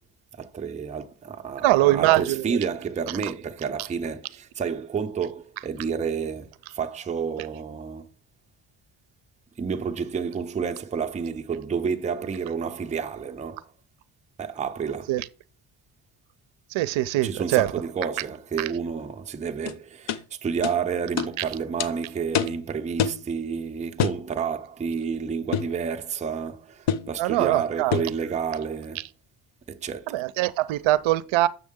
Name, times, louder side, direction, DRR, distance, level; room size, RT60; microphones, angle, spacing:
voice 1, 0.4-8.0 9.6-13.7 14.4-15.2 17.1-29.1 29.7-30.2, right 6 dB, 15° right, 0.5 m, -30 dB
voice 2, 1.6-2.6 15.1-15.3 16.7-17.8 21.4-21.5 27.2-28.0 30.1-31.5, right 16 dB, 70° right, 0.6 m, -22 dB
sound 1, 19.7-19.8 20.1-20.2 20.6-20.8 21.2-21.3 21.8-21.9 22.3-22.6 23.0-23.2 24.0-24.2 25.5-25.8 26.9-27.1 27.9-28.2, left 8 dB, 65° left, 0.7 m, -26 dB
7.2 x 6.3 x 3.6 m
cardioid pair, 125°, 49 cm